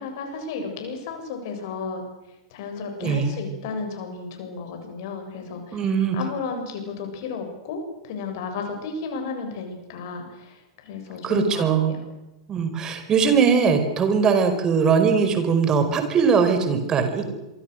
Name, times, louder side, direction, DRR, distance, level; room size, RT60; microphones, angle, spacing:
voice 1, 0.0-2.0 2.5-5.9 6.1-12.0, left 4 dB, 50° left, 4 dB, 7.5 m, -33 dB
voice 2, 3.0-3.3 5.7-6.2 11.2-11.9 12.5-17.3, right 6 dB, 25° right, 8 dB, 5.0 m, -20 dB
27.5 x 24.0 x 6.7 m, 0.99 s
figure-of-eight pair, 95°, 2 cm